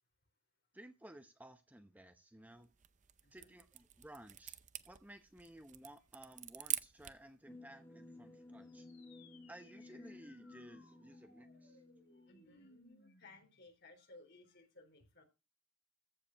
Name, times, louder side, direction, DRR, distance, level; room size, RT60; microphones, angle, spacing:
voice 1, 0.7-2.7 3.3-4.6 4.8-8.9 9.5-11.8, right 1 dB, 10° right, 0.8 m, -56 dB
sound 1, 2.6-7.3, right 12 dB, 35° right, 0.6 m, -45 dB
voice 2, 3.2-3.5 12.1-15.2, left 2 dB, 55° left, 3.4 m, -61 dB
sound 2, 7.5-12.8, left 2 dB, 10° left, 1.4 m, -56 dB
sound 3, 8.6-13.6, left 3 dB, 75° left, 6.6 m, -66 dB
14.5 x 5.1 x 6.3 m
head